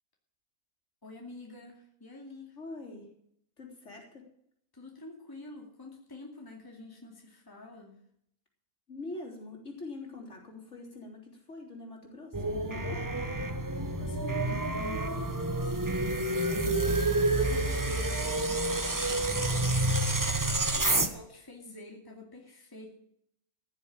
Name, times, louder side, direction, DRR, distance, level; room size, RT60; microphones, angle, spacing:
voice 1, 1.0-2.6 4.7-7.9 13.8-19.7 20.7-22.9, left 2 dB, 15° left, 0 dB, 2.5 m, -48 dB
voice 2, 2.5-3.1 3.6-4.2 8.9-13.0 20.9-21.1, left 2 dB, 55° left, -1 dB, 4.0 m, -44 dB
sound 1, 12.3-21.1, right 2 dB, 15° right, 0.9 m, -29 dB
15.5 x 7.4 x 8.8 m, 0.70 s
omnidirectional pair, 1.5 m